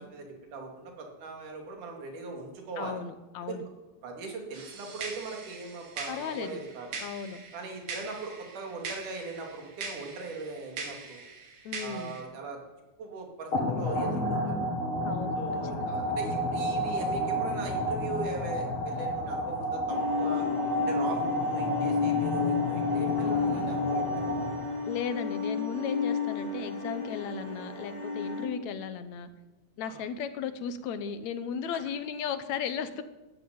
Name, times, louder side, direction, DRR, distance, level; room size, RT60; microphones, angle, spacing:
voice 1, 0.0-3.0 3.4-3.6 4.0-7.0 7.5-11.2 11.8-12.6 13.0-14.6 15.4-20.5 20.9-24.6 29.8-30.0, right 3 dB, 85° right, 2 dB, 4.1 m, -40 dB
voice 2, 2.8-3.6 6.1-6.6 7.0-7.4 11.7-12.2 15.0-16.0 23.2-23.7 24.9-29.3 29.8-33.0, left 7 dB, 70° left, 11 dB, 2.1 m, -36 dB
sound 1, 4.5-12.2, right 4 dB, 70° right, 3.7 m, -42 dB
sound 2, 13.5-24.9, equal, 45° left, 2.8 m, -31 dB
sound 3, 19.9-28.5, left 5 dB, 15° left, 3.1 m, -31 dB
13.5 x 10.5 x 9.3 m, 1.1 s
omnidirectional pair, 3.5 m